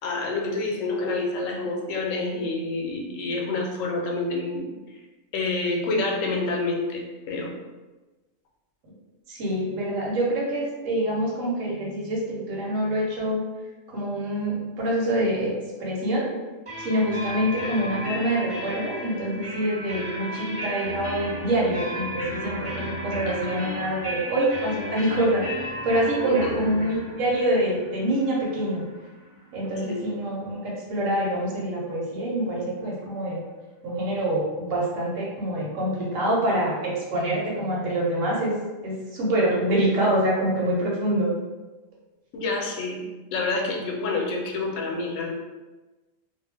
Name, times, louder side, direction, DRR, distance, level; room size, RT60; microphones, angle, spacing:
voice 1, 0.0-4.7 5.3-7.5 19.6-19.7 23.3-23.6 26.3-26.6 29.7-30.0 42.3-43.0 43.3-45.3, left 3 dB, 75° left, 0 dB, 1.0 m, -28 dB
voice 2, 9.3-13.4 13.9-15.5 15.8-16.3 16.8-28.8 29.5-33.4 33.8-38.5 38.8-41.3, right 1 dB, 75° right, -4 dB, 1.2 m, -26 dB
sound 1, 16.7-30.2, equal, 35° right, 0.5 m, -35 dB
2.4 x 2.2 x 3.3 m, 1.2 s
omnidirectional pair, 1.4 m